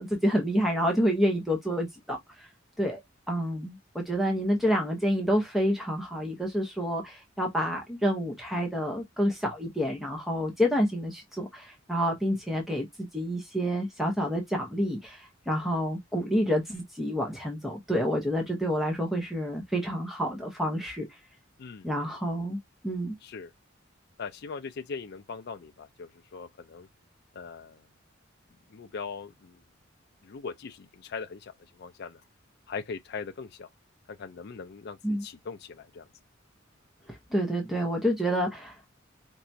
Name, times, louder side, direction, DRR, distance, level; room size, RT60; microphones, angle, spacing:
voice 1, 0.0-2.5 2.8-3.0 3.3-21.1 21.8-23.2 35.0-35.2 37.1-39.0, equal, ahead, 0.9 m, -28 dB
voice 2, 23.2-23.5 24.2-26.9 27.3-27.8 28.7-29.6 30.2-32.2 32.7-33.7 34.2-36.1, left 5 dB, 55° left, 0.4 m, -40 dB
4.5 x 2.9 x 2.6 m
head